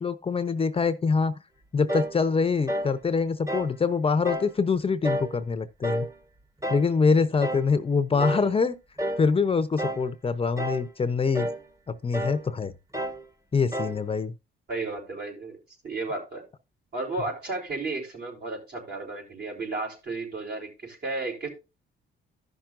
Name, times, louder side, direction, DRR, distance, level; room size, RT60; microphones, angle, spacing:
voice 1, 0.0-1.4 1.7-6.1 6.7-8.7 9.2-11.5 11.9-12.7 13.5-14.3, left 5 dB, 30° left, 0.6 m, -24 dB
sound 1, 1.9-2.2 2.7-3.0 3.5-3.8 4.2-4.5 5.0-5.4 5.8-6.1 6.6-6.9 7.4-7.7 8.2-8.5 9.0-9.3 9.8-10.1 10.6-10.9 11.3-11.6 12.1-12.4 12.9-13.2 13.7-14.0, right 1 dB, 15° right, 1.1 m, -30 dB
voice 2, 8.1-8.5 14.7-15.6 15.8-16.4 16.9-21.5, right 3 dB, 55° right, 4.3 m, -33 dB
14.5 x 5.9 x 2.5 m
cardioid pair, 90°, 20 cm